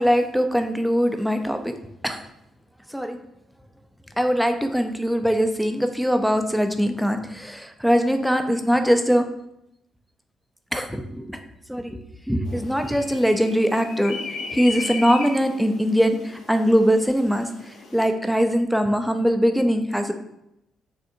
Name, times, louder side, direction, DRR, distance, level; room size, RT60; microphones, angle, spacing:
voice 1, 0.0-1.6 2.0-2.2 2.9-3.2 4.2-9.3 10.7-11.4 11.7-12.0 12.3-14.2 14.5-20.1, equal, ahead, 6 dB, 0.5 m, -21 dB
sound 1, 12.4-18.1, left 3 dB, 75° left, 0.8 m, -36 dB
6.3 x 2.6 x 2.6 m, 0.83 s
cardioid pair, 90°, 0 cm